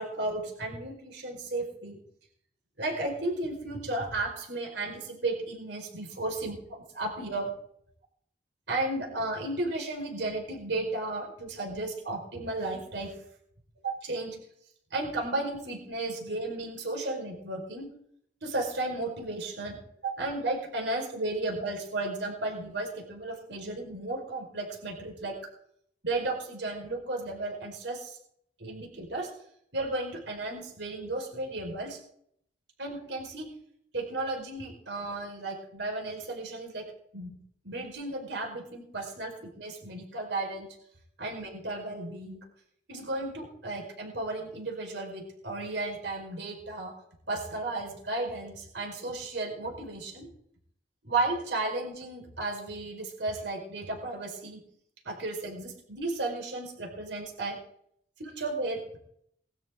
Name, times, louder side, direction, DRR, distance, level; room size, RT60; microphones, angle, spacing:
voice 1, 0.0-2.0 2.8-6.6 6.9-7.5 8.7-13.1 13.8-14.4 14.9-17.9 18.4-25.4 26.0-28.2 28.6-29.3 29.7-32.0 32.8-33.5 33.9-36.8 37.1-37.4 37.6-40.7 41.2-42.4 42.9-46.9 47.3-50.3 51.0-54.6 55.0-57.6 58.2-59.0, right 2 dB, 75° right, 0 dB, 4.9 m, -34 dB
21.0 x 13.0 x 3.8 m, 0.68 s
head